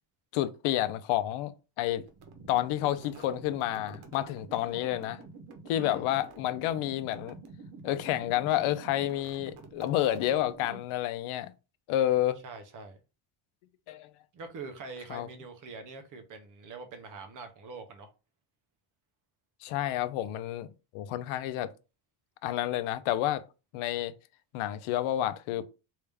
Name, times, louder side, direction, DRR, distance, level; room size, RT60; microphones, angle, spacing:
voice 1, 0.3-2.0 2.5-5.2 5.7-7.4 7.8-11.5 11.9-12.4 13.9-14.1 15.1-15.3 19.6-20.7 20.9-21.7 22.4-23.4 23.7-24.1 24.5-25.6, left 13 dB, 80° left, 0.6 m, -29 dB
sound 1, 2.1-11.0, right 3 dB, 75° right, 1.0 m, -49 dB
voice 2, 12.4-13.0 14.3-18.1, right 4 dB, 40° right, 0.7 m, -44 dB
3.3 x 2.7 x 3.4 m
cardioid pair, 175°, 50 cm